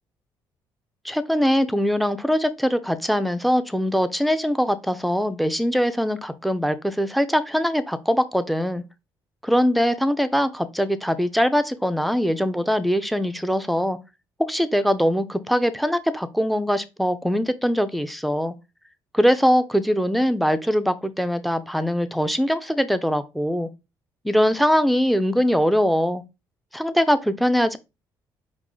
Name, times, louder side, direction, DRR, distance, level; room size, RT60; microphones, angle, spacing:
voice 1, 1.0-8.8 9.4-14.0 14.5-18.5 19.1-23.7 24.2-26.2 26.7-27.8, equal, ahead, 0.5 m, -22 dB
4.7 x 2.4 x 3.7 m
cardioid pair, 90°, 8 cm